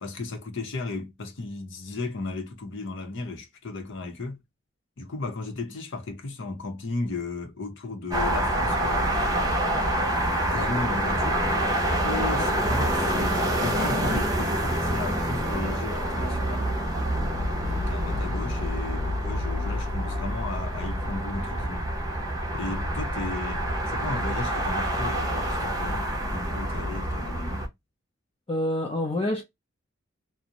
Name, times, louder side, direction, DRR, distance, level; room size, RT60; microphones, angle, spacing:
voice 1, 0.0-4.4 5.0-9.4 10.5-11.4 12.0-16.7 17.6-21.8 22.5-27.7, left 3 dB, 60° left, 0.7 m, -35 dB
sound 1, 8.1-27.7, right 1 dB, 20° right, 0.6 m, -27 dB
voice 2, 18.0-18.4 28.5-29.4, left 1 dB, 25° left, 0.5 m, -28 dB
2.5 x 2.1 x 2.7 m
head